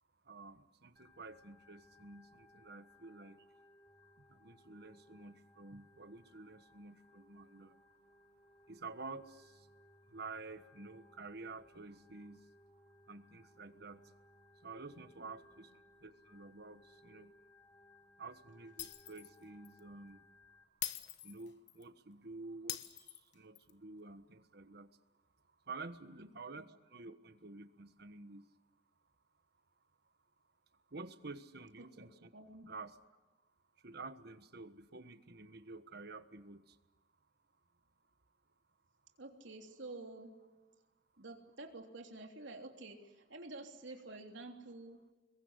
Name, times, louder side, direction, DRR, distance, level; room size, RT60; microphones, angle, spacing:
voice 1, 0.3-3.4 4.3-7.8 8.7-9.5 10.1-12.4 13.1-14.0 14.6-15.7 16.0-17.3 18.2-20.2 21.2-22.8 23.3-24.9 25.7-28.4 30.9-32.3 32.6-32.9 33.8-36.6, right 3 dB, 60° right, 11 dB, 1.4 m, -50 dB
Organ, 1.0-20.6, left 1 dB, 15° left, 3.6 m, -65 dB
Shatter, 18.8-19.4 19.7-19.8 20.8-21.8 22.7-23.7, left 13 dB, 65° left, 1.3 m, -43 dB
voice 2, 32.3-32.7 39.2-40.3 41.2-45.0, right 2 dB, 90° right, 3 dB, 3.3 m, -50 dB
27.0 x 22.0 x 8.2 m, 1.2 s
head